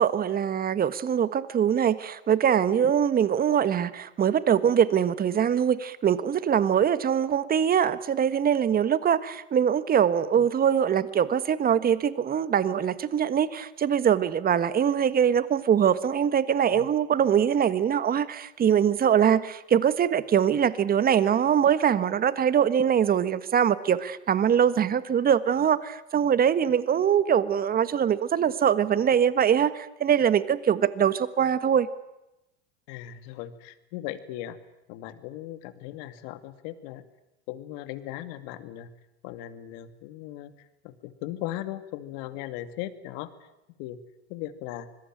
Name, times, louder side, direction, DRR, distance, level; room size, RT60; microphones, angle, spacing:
voice 1, 0.0-31.9, right 8 dB, 25° right, 15 dB, 1.5 m, -23 dB
voice 2, 32.9-34.6 34.9-37.0 37.5-38.9 39.2-40.5 40.8-43.3 43.8-44.0 44.3-44.9, left 13 dB, 60° left, 11 dB, 2.5 m, -38 dB
26.0 x 21.5 x 9.1 m, 0.91 s
supercardioid pair, 125°, 34 cm